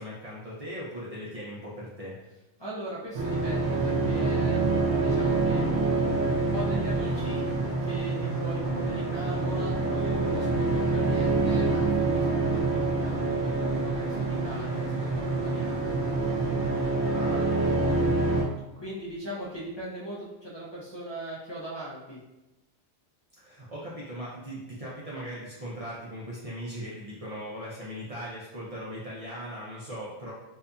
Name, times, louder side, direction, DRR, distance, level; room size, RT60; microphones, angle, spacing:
voice 1, 0.0-2.2 17.1-18.0 23.4-30.3, equal, 45° right, -7 dB, 0.5 m, -39 dB
voice 2, 2.6-5.6 6.5-7.5 7.8-15.9 17.2-22.2, equal, 45° left, -8 dB, 0.3 m, -40 dB
sound 1, 3.1-18.4, right 3 dB, 80° right, 1.1 m, -26 dB
2.8 x 2.5 x 2.2 m, 1.0 s
omnidirectional pair, 1.2 m